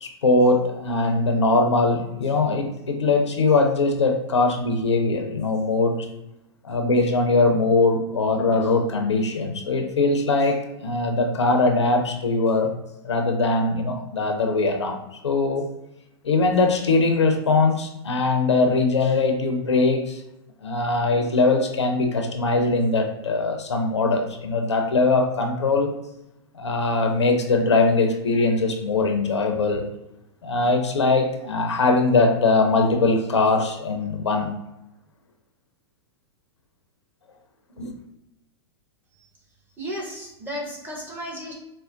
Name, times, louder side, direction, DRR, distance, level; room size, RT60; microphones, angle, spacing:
voice 1, 0.0-6.0 6.6-12.7 13.0-15.0 15.2-15.7 16.2-20.2 20.6-25.9 26.6-29.8 30.4-34.5 37.8-38.0, left 3 dB, 85° left, 4 dB, 0.5 m, -21 dB
voice 2, 39.8-41.5, equal, 15° right, -2 dB, 1.0 m, -33 dB
4.3 x 2.1 x 2.5 m, 0.89 s
hypercardioid pair, 105°, 14 cm